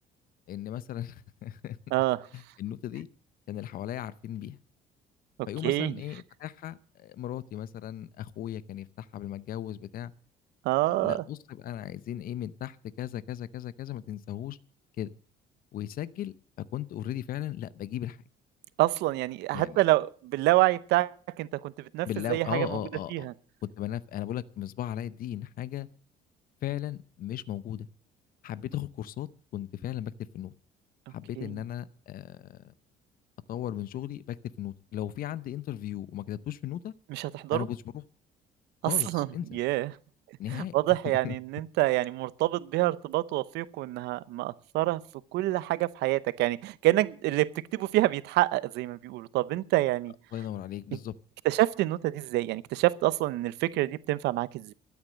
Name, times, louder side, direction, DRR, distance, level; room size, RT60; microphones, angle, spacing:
voice 1, 0.5-1.8 2.3-3.1 3.5-4.6 5.5-10.1 10.8-14.6 15.0-15.1 15.7-18.2 19.5-19.8 22.0-23.3 23.8-25.9 26.6-27.9 28.4-30.5 31.1-32.7 33.5-36.9 37.5-38.0 38.9-39.6 40.4-40.7 41.2-41.3 50.3-51.1, left 12 dB, 60° left, 0.7 m, -36 dB
voice 2, 5.6-5.9 10.6-11.2 18.8-21.1 21.4-22.7 23.1-23.3 31.4-31.5 37.1-37.7 38.8-39.3 39.5-39.9 40.5-45.0 45.3-50.1 51.4-54.7, right 17 dB, 85° right, 0.8 m, -27 dB
13.0 x 9.6 x 7.5 m
cardioid pair, 110°, 17 cm